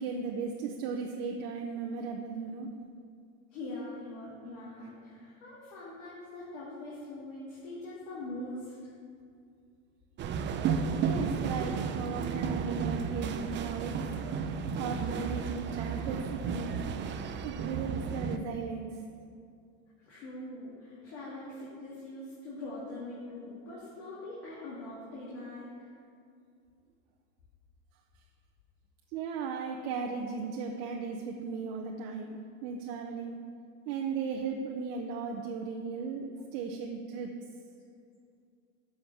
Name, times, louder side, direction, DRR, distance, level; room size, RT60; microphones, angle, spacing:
voice 1, 0.0-2.7 11.0-14.0 14.4-16.8 17.4-19.0 29.1-33.3 33.9-36.3 36.5-37.3, right 5 dB, 65° right, 1 dB, 0.8 m, -36 dB
voice 2, 3.5-8.9 20.0-25.9, left 2 dB, 75° left, -8 dB, 2.3 m, -43 dB
sound 1, 10.2-18.4, right 6 dB, 30° right, 0.5 m, -33 dB
7.0 x 5.2 x 7.3 m, 2.4 s
supercardioid pair, 115°, 37 cm